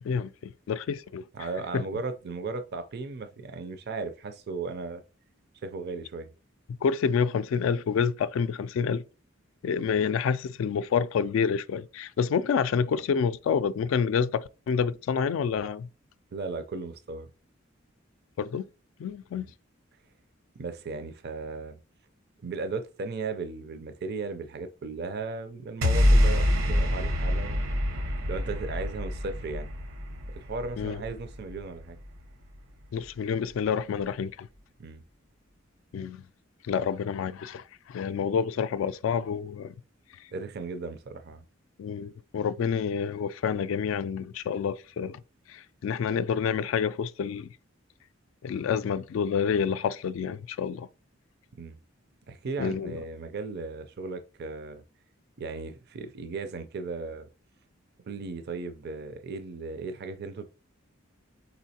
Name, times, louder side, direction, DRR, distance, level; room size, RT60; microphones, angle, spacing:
voice 1, 0.0-1.2 1.7-1.8 6.8-9.0 9.6-15.9 18.4-18.7 19.0-19.5 30.8-31.0 32.9-34.5 35.9-36.2 36.7-39.8 41.8-45.2 45.5-47.5 48.4-50.9 52.6-52.9, left 6 dB, 75° left, 0.3 m, -28 dB
voice 2, 1.3-5.0 5.6-6.3 16.3-17.3 19.3-19.5 20.6-21.8 22.4-27.6 28.3-29.7 30.4-32.0 34.8-35.0 40.3-41.4 51.6-51.8 52.3-54.8 55.4-57.3 58.1-60.5, right 4 dB, 55° right, 0.5 m, -36 dB
sound 1, 25.8-32.3, left 1 dB, 85° right, 1.0 m, -26 dB
4.5 x 4.1 x 2.8 m
head